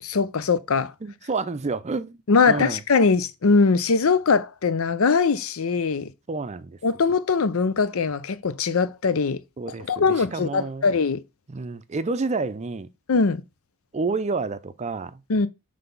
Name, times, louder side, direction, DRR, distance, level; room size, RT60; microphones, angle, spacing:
voice 1, 0.0-0.9 2.3-6.1 6.8-9.4 9.9-11.2 13.1-13.4 15.3-15.5, left 4 dB, 90° left, 0.6 m, -21 dB
voice 2, 1.0-2.2 2.4-2.9 6.3-6.8 9.6-10.9 11.5-12.9 13.9-15.2, right 3 dB, 30° right, 0.5 m, -29 dB
5.9 x 3.4 x 5.3 m
head